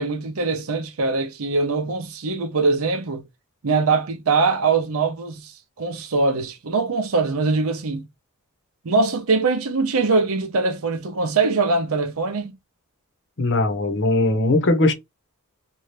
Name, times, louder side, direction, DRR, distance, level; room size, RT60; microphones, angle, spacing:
voice 1, 0.0-3.2 3.6-8.0 8.8-12.5, right 4 dB, 65° right, 0.6 m, -22 dB
voice 2, 13.4-14.9, left 2 dB, 55° left, 0.8 m, -19 dB
2.7 x 2.3 x 3.1 m
head